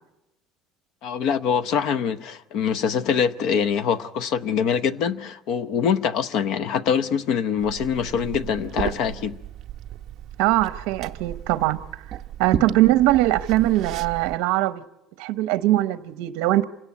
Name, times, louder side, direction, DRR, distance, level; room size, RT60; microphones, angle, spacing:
voice 1, 1.0-9.4, left 7 dB, 50° left, 0.8 m, -24 dB
Liquid, 7.6-14.4, right 10 dB, 40° right, 0.8 m, -34 dB
voice 2, 10.4-14.8 15.2-16.6, right 16 dB, 70° right, 0.8 m, -21 dB
27.0 x 17.5 x 8.5 m
cardioid pair, 175°, 0 cm